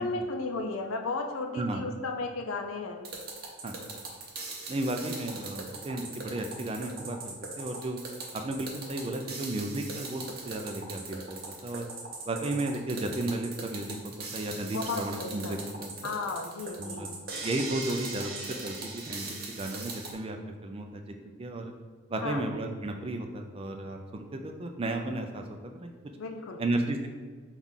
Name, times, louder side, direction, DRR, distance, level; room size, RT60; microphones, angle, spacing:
voice 1, 0.0-3.0 14.7-15.6 16.0-17.0 22.2-22.4 26.2-26.6, left 3 dB, 75° left, 3 dB, 0.4 m, -34 dB
sound 1, 3.0-20.1, right 3 dB, 45° right, 0.7 m, -40 dB
voice 2, 3.6-4.0 4.7-8.0 8.3-11.9 12.3-14.0 14.3-15.9 16.8-17.1 17.4-21.7 22.1-25.9 26.6-27.1, right 2 dB, 25° right, 5 dB, 0.3 m, -34 dB
5.6 x 2.4 x 3.6 m, 1.5 s
head